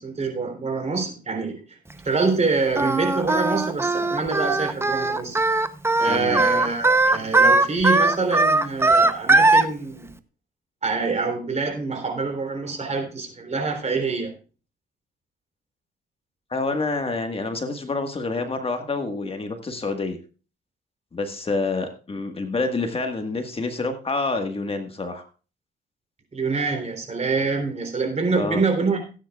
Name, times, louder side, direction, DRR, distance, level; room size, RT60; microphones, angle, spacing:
voice 1, 0.0-1.8 2.1-5.4 6.0-10.1 10.8-14.3 26.3-29.2, right 4 dB, 35° right, 5 dB, 3.5 m, -25 dB
Singing, 2.7-9.6, right 2 dB, 10° right, 0.8 m, -19 dB
voice 2, 6.1-6.4 16.5-20.2 21.1-25.3 28.3-28.6, left 3 dB, 30° left, 5 dB, 1.6 m, -27 dB
17.0 x 9.4 x 2.4 m, 0.36 s
cardioid pair, 90°, 20 cm